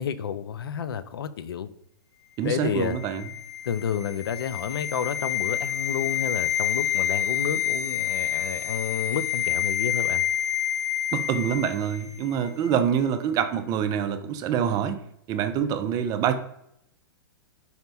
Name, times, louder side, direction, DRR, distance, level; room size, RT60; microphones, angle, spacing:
voice 1, 0.0-1.7 2.4-3.0 3.6-10.2, left 8 dB, 75° left, 13 dB, 0.4 m, -30 dB
voice 2, 2.4-3.3 11.1-15.0 15.3-16.3, right 8 dB, 30° right, 9 dB, 0.4 m, -26 dB
sound 1, 2.8-12.1 12.3-12.5, left 10 dB, 45° left, 0.7 m, -28 dB
4.2 x 2.2 x 3.9 m, 0.75 s
hypercardioid pair, 115°, 12 cm